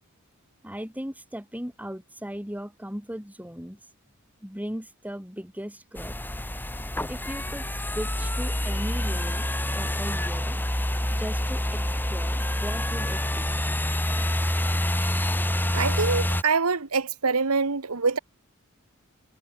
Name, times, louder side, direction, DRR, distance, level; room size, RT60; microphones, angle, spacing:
voice 1, 0.6-3.8 4.4-6.2 7.1-9.5 9.7-10.6 11.1-13.5, equal, 5° right, 5.8 m, -37 dB
sound 1, 6.0-16.4, left 1 dB, 10° left, 2.4 m, -27 dB
voice 2, 15.7-18.2, right 4 dB, 80° right, 1.4 m, -25 dB
head